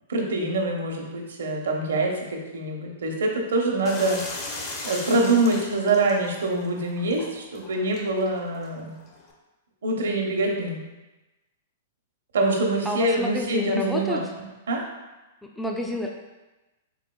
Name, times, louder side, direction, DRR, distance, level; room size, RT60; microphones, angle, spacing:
voice 1, 0.1-9.0 9.8-10.8 12.3-14.9, right 2 dB, 80° right, 0 dB, 0.7 m, -25 dB
sound 1, 3.8-9.3, left 2 dB, 35° left, 0.7 m, -39 dB
voice 2, 12.9-14.2 15.4-16.1, left 2 dB, ahead, 0 dB, 0.3 m, -29 dB
3.9 x 3.7 x 2.2 m, 1.1 s
hypercardioid pair, 120°, 0 cm